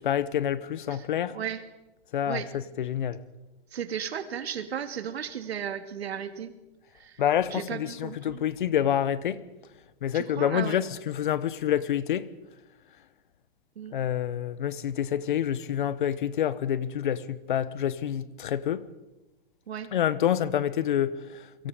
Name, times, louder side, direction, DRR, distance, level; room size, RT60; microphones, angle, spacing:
voice 1, 0.0-1.4 2.1-3.2 7.2-9.4 10.0-12.3 13.9-18.9 19.9-21.7, left 10 dB, 50° left, 1.2 m, -27 dB
voice 2, 1.3-1.6 2.3-2.5 3.7-6.5 7.0-7.2 7.5-8.4 10.1-10.8 13.8-14.0 19.7-19.9, right 8 dB, 75° right, 2.7 m, -35 dB
29.5 x 24.5 x 5.2 m
hypercardioid pair, 175°, 32 cm